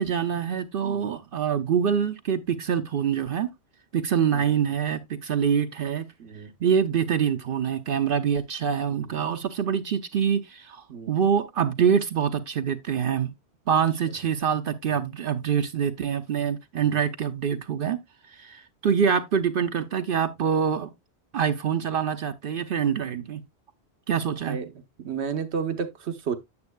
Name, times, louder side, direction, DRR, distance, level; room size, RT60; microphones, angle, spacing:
voice 1, 0.0-3.5 3.9-6.1 6.6-13.3 13.7-18.0 18.3-20.9 21.3-23.4 24.1-24.6, right 7 dB, 60° right, 0.8 m, -25 dB
voice 2, 6.2-6.5 8.9-9.2 10.9-11.1 16.7-17.0 24.5-24.7 25.0-26.3, right 6 dB, 85° right, 1.3 m, -32 dB
9.6 x 7.4 x 2.2 m
omnidirectional pair, 1.1 m